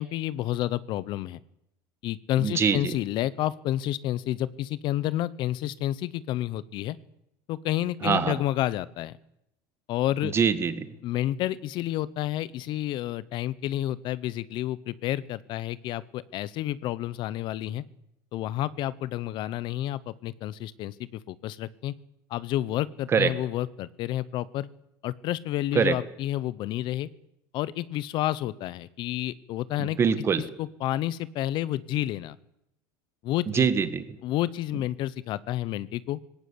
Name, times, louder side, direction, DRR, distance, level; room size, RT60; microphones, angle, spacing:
voice 1, 0.0-1.4 2.0-7.0 7.5-9.1 9.9-10.3 11.0-17.8 18.3-21.9 22.3-24.7 25.0-27.1 27.5-30.0 30.4-32.4 33.2-33.7 34.2-36.2, left 14 dB, 45° left, 19 dB, 0.8 m, -30 dB
voice 2, 2.4-2.9 8.0-8.4 10.2-10.8 23.1-23.3 25.8-26.0 29.8-30.4 33.5-34.1, right 6 dB, 25° right, 13 dB, 1.7 m, -23 dB
19.5 x 17.5 x 8.5 m, 0.80 s
cardioid pair, 150°, 11 cm